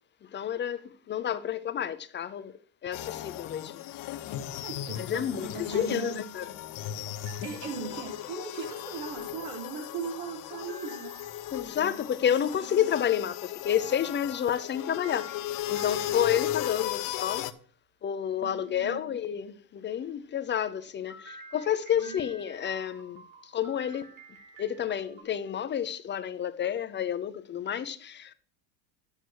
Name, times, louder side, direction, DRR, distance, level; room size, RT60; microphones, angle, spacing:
voice 1, 0.3-2.5 2.8-3.8 5.0-6.5 11.5-15.4 15.7-17.5 18.0-24.1 24.6-28.3, left 9 dB, 25° left, 0.6 m, -30 dB
sound 1, 2.9-17.5, left 12 dB, 55° left, 0.9 m, -36 dB
voice 2, 4.6-6.2 7.4-11.1 16.0-16.2 18.4-19.1 22.0-22.1, right 6 dB, 85° right, 4.4 m, -39 dB
sound 2, 7.3-9.7 10.7-12.3 15.0-16.7 21.1-25.2, right 3 dB, 55° right, 3.9 m, -51 dB
10.5 x 8.2 x 4.6 m
cardioid pair, 145°, 41 cm